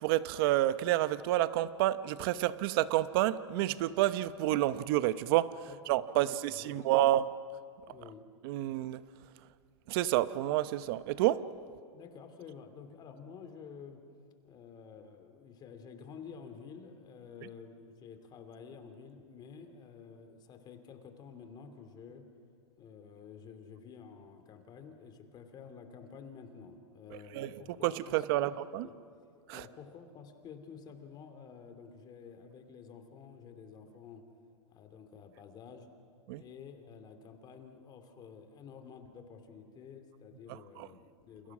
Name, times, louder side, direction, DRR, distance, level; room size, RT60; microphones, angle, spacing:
voice 1, 0.0-5.5 5.9-7.3 8.4-9.0 9.9-11.5 27.3-27.5 27.8-28.9 29.5-29.6 36.3-36.4, right 14 dB, 50° right, 15 dB, 0.9 m, -29 dB
voice 2, 5.7-7.1 7.9-8.2 11.9-14.0 14.4-22.3 22.8-28.6 28.8-29.0 29.5-34.2 34.7-35.9 36.3-41.5, left 6 dB, 25° left, 7 dB, 2.8 m, -51 dB
29.0 x 29.0 x 6.2 m, 2.4 s
hypercardioid pair, 135°, 16 cm